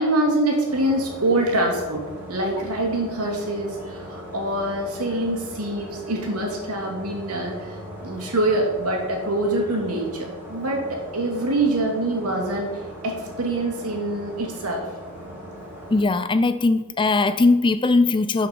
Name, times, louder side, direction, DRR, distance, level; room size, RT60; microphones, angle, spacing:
voice 1, 0.0-12.7 13.0-14.8, right 1 dB, 85° right, 0 dB, 2.7 m, -25 dB
sound 1, 0.6-16.0, equal, 10° right, 3.8 m, -39 dB
voice 2, 15.9-18.5, left 3 dB, 20° left, 12 dB, 0.4 m, -19 dB
12.0 x 5.9 x 5.3 m, 1.2 s
head